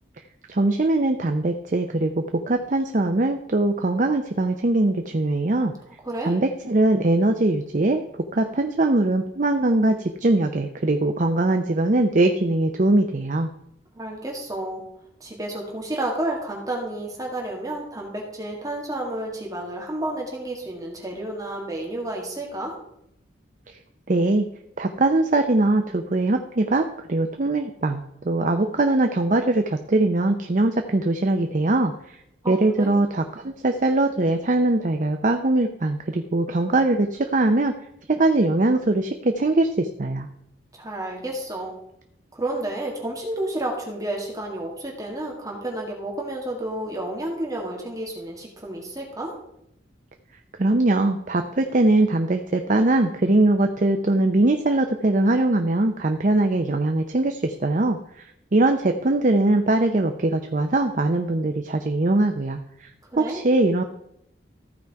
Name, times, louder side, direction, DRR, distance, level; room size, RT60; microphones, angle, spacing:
voice 1, 0.5-5.7 6.2-13.5 23.7-23.8 24.1-24.5 24.8-31.9 32.5-37.7 38.1-40.3 50.6-58.0 58.5-62.9 63.2-63.8, right 2 dB, 40° right, 6 dB, 0.6 m, -21 dB
voice 2, 6.0-6.4 14.0-14.8 15.2-22.8 32.4-33.0 40.7-41.8 42.3-49.3 63.1-63.4, right 1 dB, 20° right, -1 dB, 1.7 m, -31 dB
14.5 x 4.8 x 4.7 m, 0.77 s
head